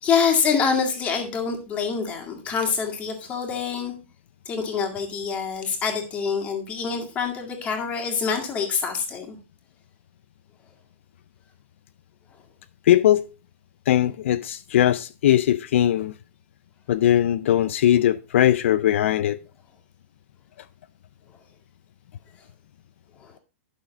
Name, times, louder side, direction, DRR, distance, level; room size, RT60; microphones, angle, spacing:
voice 1, 0.0-3.9 4.5-9.4 23.2-23.3, left 6 dB, 20° left, 2.0 m, -26 dB
voice 2, 12.9-13.3 13.9-16.1 16.9-19.4, left 11 dB, 65° left, 0.4 m, -20 dB
11.5 x 6.3 x 3.9 m
supercardioid pair, 165°, 7 cm